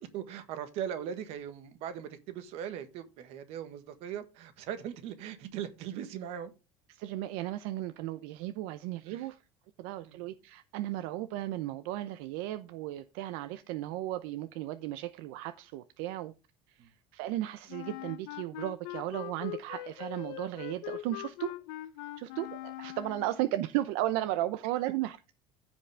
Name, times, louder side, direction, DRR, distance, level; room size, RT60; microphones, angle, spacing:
voice 1, 0.1-6.5 9.1-9.3 10.0-10.2 16.8-16.9, right 9 dB, 55° right, 1.5 m, -39 dB
voice 2, 6.9-9.4 9.8-16.3 16.7-21.5 22.2-25.3, right 14 dB, 75° right, 0.7 m, -35 dB
Wind instrument woodwind instrument, 17.7-23.4, left 17 dB, 75° left, 0.7 m, -42 dB
15.0 x 5.3 x 3.4 m
cardioid pair, 170°, 12 cm